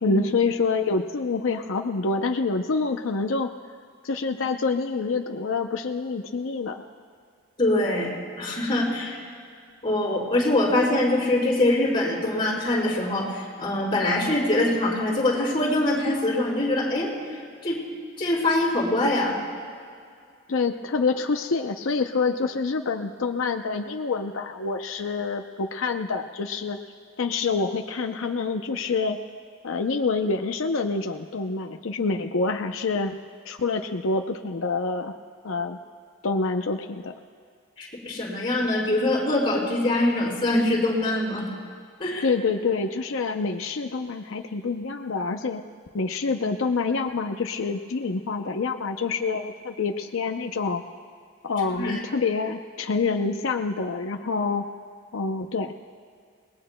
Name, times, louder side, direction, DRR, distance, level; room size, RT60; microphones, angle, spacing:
voice 1, 0.0-3.5 4.0-6.8 20.5-26.8 27.2-29.2 29.6-33.2 33.4-35.1 35.4-35.8 36.2-37.1 42.2-45.6 45.9-50.8 51.4-54.7 55.1-55.7, left 4 dB, 80° left, 5 dB, 0.6 m, -27 dB
voice 2, 7.6-8.1 8.4-9.2 9.8-17.1 17.6-17.8 18.2-19.3 37.8-41.5 42.0-42.2 51.8-52.0, left 1 dB, 25° left, -7 dB, 4.4 m, -23 dB
30.0 x 20.0 x 2.2 m, 2.2 s
head